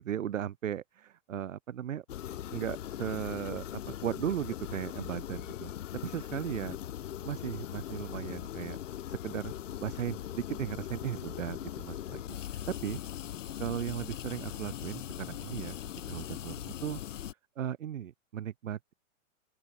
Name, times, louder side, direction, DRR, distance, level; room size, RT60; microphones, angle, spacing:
voice 1, 0.0-2.0 2.5-5.7 6.0-6.8 7.2-8.8 9.1-9.5 9.8-13.0 13.6-15.7 16.1-17.0 17.6-18.9, right 10 dB, 75° right, 4.7 m, -36 dB
sound 1, 2.1-17.3, left 11 dB, 70° left, 2.0 m, -40 dB
open air
hypercardioid pair, 165°, 39 cm